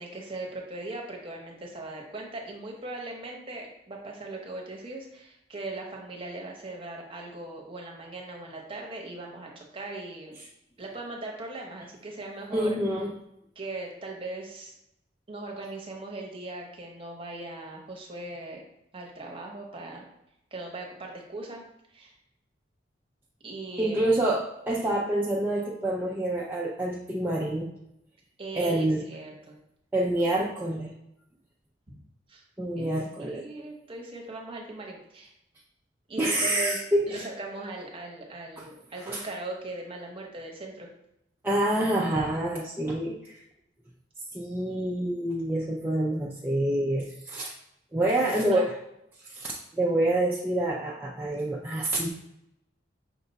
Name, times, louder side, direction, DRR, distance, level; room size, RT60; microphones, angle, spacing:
voice 1, 0.0-10.4 10.8-12.7 13.6-14.7 15.3-18.6 18.9-20.0 20.5-21.6 21.9-22.1 23.4-24.0 28.4-29.6 31.9-32.0 32.3-32.4 32.8-32.9 33.2-35.3 36.1-36.8 37.1-40.9 48.0-48.6, right 2 dB, 30° right, 0 dB, 0.9 m, -39 dB
voice 2, 12.5-13.1 23.8-27.7 28.5-29.0 29.9-30.9 32.6-33.4 36.2-37.3 38.6-38.7 39.1-39.3 41.4-43.3 44.3-47.5 47.9-48.7 49.2-52.1, right 1 dB, 10° right, -4 dB, 0.4 m, -27 dB
5.9 x 2.2 x 4.0 m, 0.83 s
head